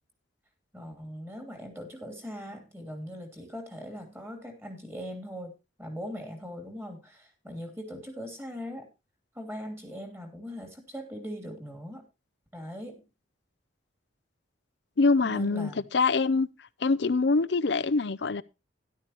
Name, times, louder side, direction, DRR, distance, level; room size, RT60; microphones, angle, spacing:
voice 1, 0.7-8.9 9.3-12.0 12.5-13.0 15.2-15.9, equal, 10° right, 2.9 m, -40 dB
voice 2, 15.0-16.5 16.8-18.4, left 4 dB, 65° left, 0.6 m, -24 dB
13.0 x 11.5 x 2.9 m
head